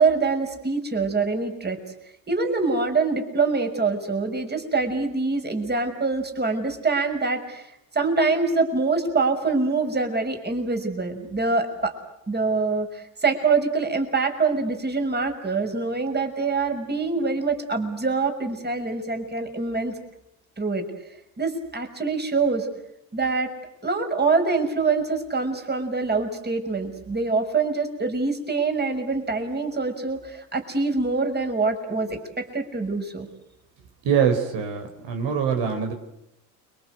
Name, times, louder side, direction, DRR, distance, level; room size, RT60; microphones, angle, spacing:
voice 1, 0.0-1.8 2.3-7.7 7.9-11.9 12.3-19.9 20.6-20.9 21.4-22.7 23.1-23.5 23.8-33.3, right 4 dB, 20° right, 5 dB, 6.2 m, -25 dB
voice 2, 34.0-35.9, right 7 dB, 65° right, 4 dB, 5.0 m, -23 dB
29.5 x 24.0 x 8.1 m, 0.83 s
hypercardioid pair, 75°, 47 cm